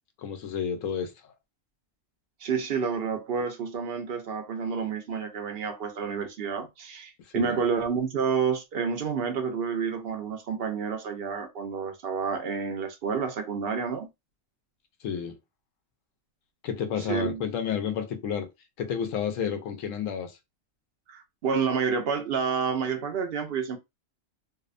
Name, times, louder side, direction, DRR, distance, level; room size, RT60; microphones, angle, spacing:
voice 1, 0.2-1.3 7.4-7.6 15.0-15.4 16.6-18.5 18.8-20.4, left 7 dB, 85° left, 1.0 m, -31 dB
voice 2, 2.4-14.1 17.0-17.4 21.1-23.8, right 6 dB, 60° right, 0.7 m, -29 dB
2.7 x 2.0 x 2.4 m
omnidirectional pair, 1.3 m